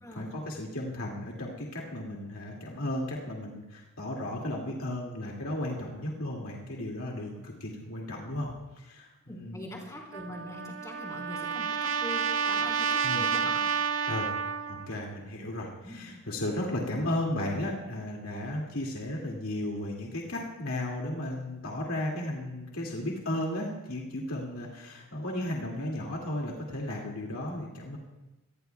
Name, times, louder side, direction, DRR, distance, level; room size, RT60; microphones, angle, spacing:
voice 1, 0.1-9.6 13.0-13.3 14.1-14.3 14.7-28.0, left 1 dB, 75° left, -2 dB, 2.2 m, -34 dB
voice 2, 9.3-13.7 15.8-16.0, left 1 dB, 15° left, -2 dB, 3.8 m, -42 dB
Trumpet, 10.1-14.9, right 6 dB, 60° right, 0.7 m, -30 dB
26.5 x 19.5 x 2.3 m, 1.0 s
head